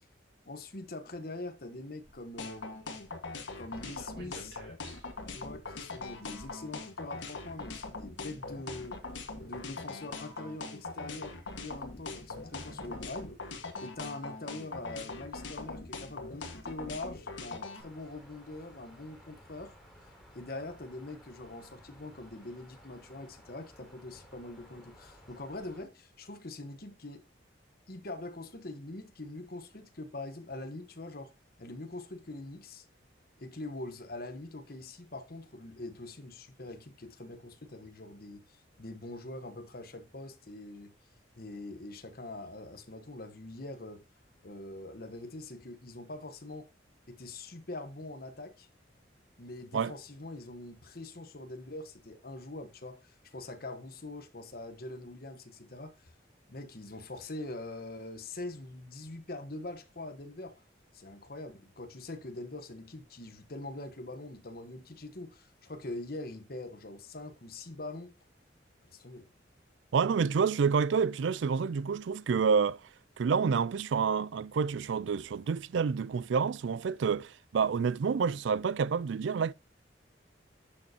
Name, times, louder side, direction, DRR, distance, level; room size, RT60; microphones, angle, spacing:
voice 1, 0.4-2.8 3.6-4.6 5.3-9.0 9.4-13.4 13.8-19.7 20.3-27.2 27.9-31.3 31.6-32.8 33.4-40.9 41.4-44.0 44.4-46.7 47.1-48.7 49.4-56.1 56.5-60.5 60.9-68.1 68.8-69.3, left 2 dB, 50° left, 1.2 m, -43 dB
sound 1, 2.0-7.4 8.3-9.8 10.7-10.8 11.7-11.8 12.2-13.4 14.3-15.4 15.8-15.9 16.2-16.3, right 1 dB, 60° right, 3.4 m, -55 dB
sound 2, 2.4-17.8, left 3 dB, 75° left, 1.7 m, -41 dB
sound 3, 17.8-25.8, equal, ahead, 5.0 m, -56 dB
voice 2, 69.9-72.8 73.2-79.5, right 6 dB, 75° right, 0.4 m, -28 dB
11.5 x 6.7 x 2.9 m
head